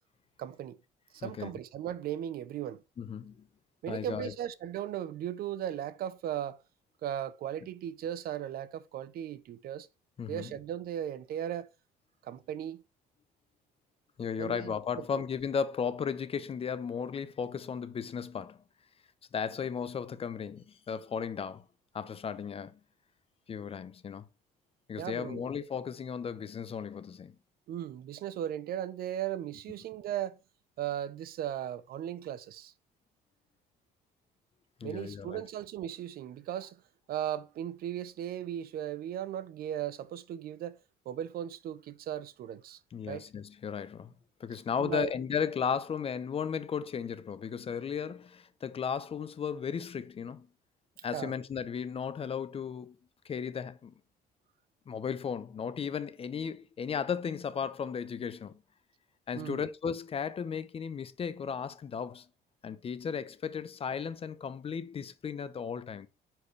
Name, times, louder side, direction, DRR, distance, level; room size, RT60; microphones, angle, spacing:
voice 1, 0.4-0.8 1.1-2.8 3.8-6.6 7.0-9.9 10.3-11.7 12.2-12.8 14.4-15.2 25.0-25.4 27.7-30.4 30.8-32.7 34.8-36.8 37.1-40.8 41.1-42.8 43.1-43.3 44.5-45.1 51.1-51.3 59.3-59.6, right 11 dB, 65° right, 0.7 m, -37 dB
voice 2, 3.0-3.4 3.9-4.3 10.2-10.5 14.2-18.6 19.3-21.6 21.9-22.8 23.5-24.2 24.9-27.3 34.8-35.4 42.9-44.1 44.4-50.5 51.0-53.0 53.2-53.9 54.9-58.6 59.3-62.3 62.6-66.1, left 7 dB, 35° left, 0.7 m, -35 dB
9.6 x 4.6 x 3.2 m
cardioid pair, 110°, 17 cm